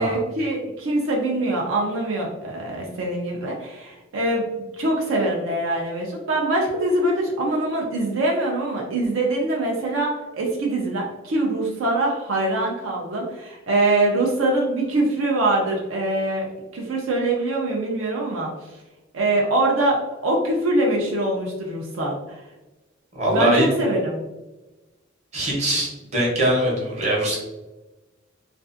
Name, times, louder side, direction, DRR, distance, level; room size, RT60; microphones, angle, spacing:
voice 1, 0.0-16.5 16.7-18.5 19.1-22.4 23.3-24.2, right 2 dB, 75° right, -1 dB, 0.5 m, -23 dB
voice 2, 23.1-23.7 25.3-27.4, right 1 dB, 35° right, -4 dB, 0.8 m, -22 dB
2.5 x 2.4 x 2.4 m, 1.1 s
head